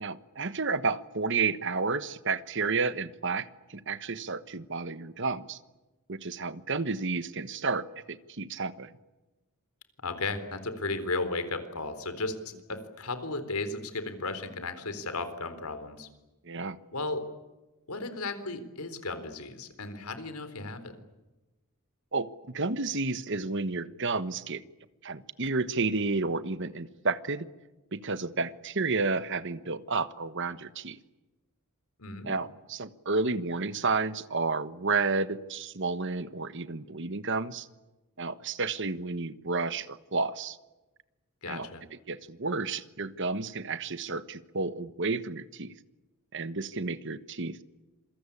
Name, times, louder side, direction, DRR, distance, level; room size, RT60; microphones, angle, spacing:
voice 1, 0.0-3.5 3.7-5.6 6.1-8.9 16.4-16.8 22.1-24.6 25.0-27.5 27.9-31.0 32.2-37.7 38.2-40.6 41.5-41.7 42.1-45.7 46.3-47.6, right 4 dB, 55° right, 13 dB, 1.3 m, -31 dB
voice 2, 10.0-16.1 16.9-17.3 17.9-20.9 32.0-32.3 41.4-41.8, left 3 dB, 85° left, 11 dB, 4.0 m, -35 dB
27.5 x 23.5 x 8.6 m, 1.1 s
head